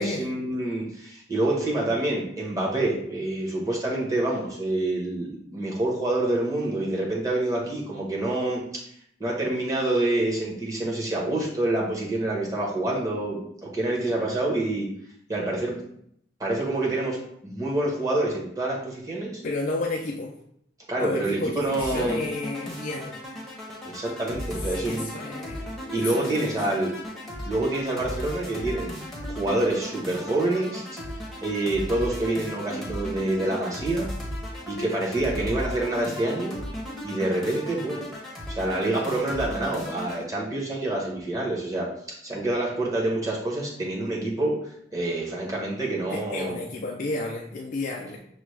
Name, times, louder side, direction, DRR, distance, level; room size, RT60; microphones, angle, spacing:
voice 1, 0.0-8.8 9.2-14.9 15.3-15.7 16.4-17.2 17.4-19.4 20.9-22.2 23.8-25.0 25.9-26.9 27.4-28.9 29.3-31.0 31.4-34.1 34.7-36.5 37.0-38.0 38.5-41.9 42.2-46.7, right 2 dB, 20° right, -4 dB, 1.1 m, -27 dB
voice 2, 19.4-20.3 21.0-23.2 24.7-25.6 25.9-26.8 34.8-34.9 46.1-48.2, left 2 dB, 45° left, -1 dB, 0.4 m, -32 dB
sound 1, 21.7-40.2, equal, ahead, 0.9 m, -36 dB
6.0 x 2.3 x 3.2 m, 0.70 s
head